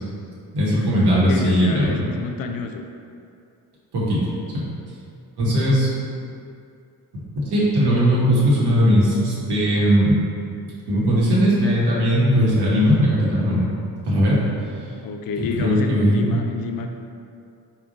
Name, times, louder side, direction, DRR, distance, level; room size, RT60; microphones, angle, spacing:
voice 1, 0.5-2.1 3.9-4.3 4.5-4.7 5.4-5.9 7.4-10.2 10.9-13.6 14.0-14.4 15.4-16.4, equal, 60° right, -7 dB, 1.0 m, -18 dB
voice 2, 1.1-2.9 15.0-16.9, left 5 dB, 55° left, 5 dB, 0.5 m, -29 dB
3.6 x 2.3 x 3.6 m, 2.4 s
hypercardioid pair, 40°, 44 cm